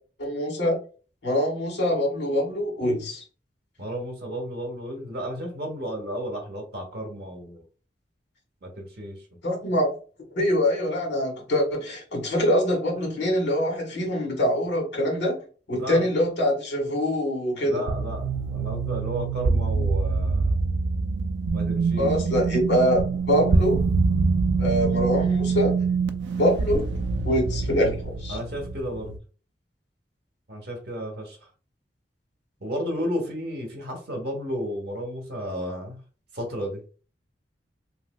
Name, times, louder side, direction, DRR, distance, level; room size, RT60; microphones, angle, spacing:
voice 1, 0.2-0.8 1.2-3.2 9.4-9.9 10.3-15.4 15.7-17.8 22.0-23.8 24.6-25.8 26.3-26.9 27.2-28.4, equal, 80° left, 1.5 m, -24 dB
voice 2, 3.8-7.6 8.6-9.2 15.7-16.1 17.6-20.6 21.5-22.2 28.3-29.2 30.5-31.4 32.6-36.0 36.3-37.0, equal, 60° right, 1.0 m, -33 dB
sound 1, 17.9-29.2, right 4 dB, 75° right, 0.3 m, -25 dB
3.2 x 2.7 x 2.2 m
head